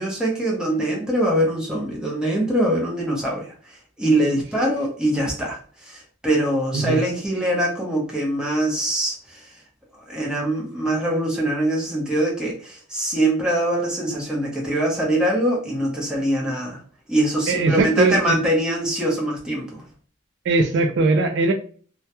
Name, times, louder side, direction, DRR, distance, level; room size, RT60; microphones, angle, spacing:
voice 1, 0.0-3.5 4.0-9.4 10.1-16.8 17.1-19.8, right 1 dB, 5° right, -3 dB, 0.7 m, -23 dB
voice 2, 17.5-18.4 20.5-21.5, right 3 dB, 55° right, 6 dB, 0.3 m, -20 dB
2.2 x 2.2 x 2.8 m, 0.43 s
head